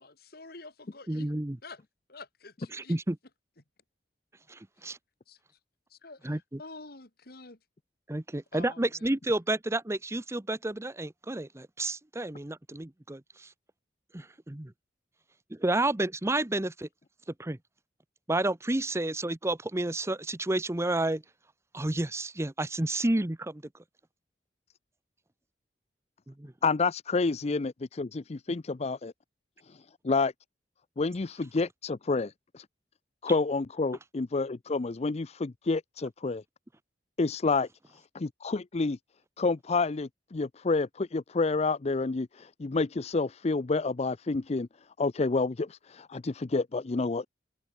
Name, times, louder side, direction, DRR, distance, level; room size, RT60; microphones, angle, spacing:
voice 1, 0.3-1.3 1.6-1.8 2.1-3.0 5.3-5.4 5.9-7.6 8.5-9.1, left 3 dB, 60° left, 3.0 m, -47 dB
voice 2, 1.1-1.6 2.7-3.1 4.5-5.0 6.2-6.6 8.1-13.5 14.1-14.7 15.5-16.9 17.4-17.6 18.3-21.2 21.7-23.6 26.3-26.5, right 2 dB, 15° right, 0.8 m, -30 dB
voice 3, 26.6-27.7 28.0-29.1 29.6-30.3 31.0-32.6 33.2-36.4 37.2-39.0 39.4-44.7 45.0-47.3, left 3 dB, 40° left, 0.5 m, -29 dB
head